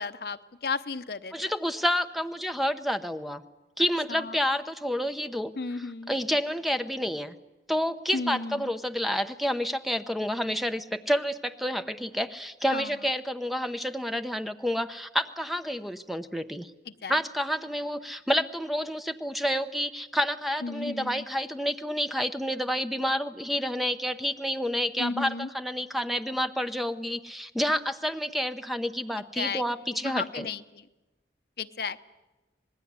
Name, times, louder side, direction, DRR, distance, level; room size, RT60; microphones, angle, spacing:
voice 1, 0.0-1.5 4.1-4.4 5.6-6.1 8.1-8.7 12.7-12.9 16.9-17.1 20.6-21.2 25.0-25.5 29.2-29.6 29.9-30.8 31.6-32.1, left 4 dB, 60° left, 12 dB, 0.8 m, -34 dB
voice 2, 1.3-3.4 3.8-7.3 7.7-16.7 17.1-30.5, equal, ahead, 8 dB, 0.8 m, -29 dB
25.5 x 20.0 x 9.6 m, 1.1 s
head